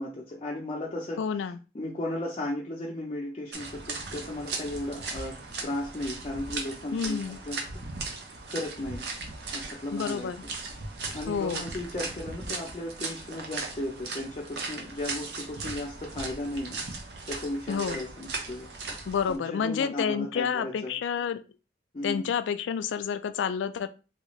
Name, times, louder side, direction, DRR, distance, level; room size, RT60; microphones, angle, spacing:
voice 1, 0.0-7.8 8.5-9.1 9.5-10.3 11.1-16.8 17.3-18.9 19.3-21.0 21.9-22.3, left 1 dB, 35° left, 0.5 m, -35 dB
voice 2, 1.2-1.6 6.9-7.4 9.9-10.4 11.3-11.7 17.7-18.0 19.1-21.4 22.0-23.9, left 7 dB, 85° left, 0.3 m, -29 dB
sound 1, 3.5-19.4, right 3 dB, 60° right, 0.7 m, -38 dB
3.6 x 2.4 x 3.0 m
head